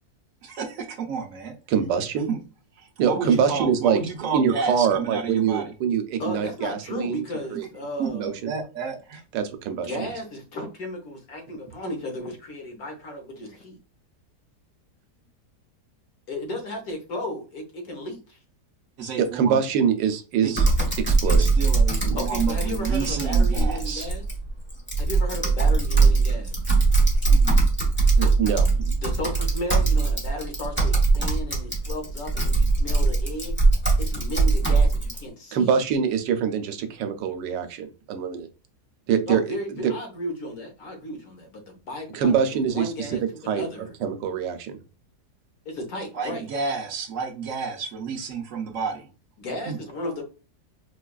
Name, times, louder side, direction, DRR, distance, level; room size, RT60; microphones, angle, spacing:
voice 1, 0.4-1.5 2.3-2.4 2.8-5.7 7.5-7.7 8.0-9.2 19.0-19.6 20.4-20.7 21.2-24.1 27.3-27.5 46.1-49.1 49.7-49.8, right 5 dB, 60° right, 2 dB, 0.9 m, -31 dB
voice 2, 1.7-2.3 3.0-4.0 4.3-7.2 7.5-7.6 8.1-8.5 9.3-9.9 19.2-20.6 21.0-21.5 22.0-22.2 28.2-28.9 35.5-38.5 39.1-39.6 39.8-39.9 42.1-42.9 43.5-43.6 44.0-44.8, right 7 dB, 90° right, 8 dB, 1.3 m, -24 dB
voice 3, 3.1-3.6 6.2-8.3 9.8-13.8 16.3-18.4 22.2-24.2 25.0-26.6 29.0-33.6 34.0-35.8 39.3-43.9 45.6-46.5 49.4-50.2, left 1 dB, 60° left, 3 dB, 1.3 m, -34 dB
Typing, 20.6-35.2, right 3 dB, 10° left, 0.6 m, -21 dB
4.7 x 2.3 x 2.2 m, 0.33 s
omnidirectional pair, 1.8 m